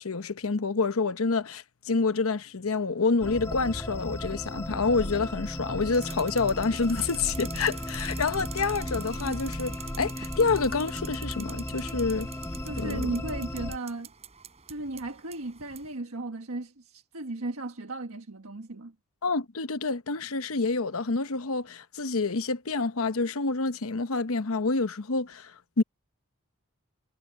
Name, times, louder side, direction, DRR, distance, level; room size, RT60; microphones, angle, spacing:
voice 1, 0.0-12.3 12.8-13.1 19.2-25.8, left 4 dB, 75° left, 0.9 m, -28 dB
sound 1, 3.2-13.8, left 1 dB, 10° left, 1.0 m, -35 dB
sound 2, 5.9-15.9, right 8 dB, 30° right, 5.7 m, -46 dB
voice 2, 12.6-14.1 14.7-18.9, right 2 dB, 80° right, 1.4 m, -36 dB
head